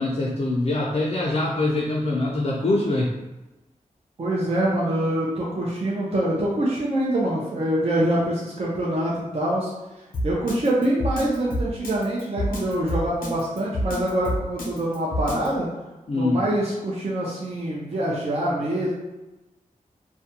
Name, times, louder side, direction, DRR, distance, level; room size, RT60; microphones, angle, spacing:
voice 1, 0.0-3.2 16.1-16.4, left 2 dB, 45° left, -4 dB, 0.4 m, -23 dB
voice 2, 4.2-9.7 10.2-15.7 16.1-18.9, right 1 dB, 45° right, -5 dB, 0.5 m, -25 dB
Drum kit, 10.1-15.5, equal, 85° left, 0.6 m, -28 dB
2.4 x 2.2 x 2.8 m, 1.1 s
wide cardioid pair, 70°, 14 cm